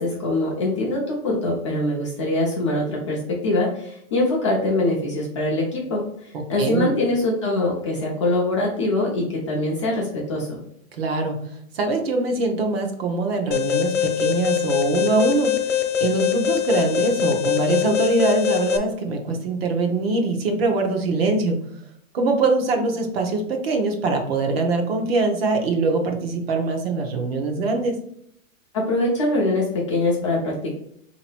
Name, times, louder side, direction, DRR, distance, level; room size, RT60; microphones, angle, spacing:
voice 1, 0.0-6.0 6.5-10.5 28.7-30.7, left 2 dB, 25° left, -3 dB, 0.4 m, -23 dB
voice 2, 6.3-6.9 11.0-11.4 11.7-21.6 22.1-28.0, right 3 dB, 45° right, 4 dB, 0.9 m, -23 dB
Alarm, 13.5-18.8, left 10 dB, 65° left, 0.9 m, -23 dB
3.7 x 2.9 x 4.4 m, 0.70 s
hypercardioid pair, 170°, 41 cm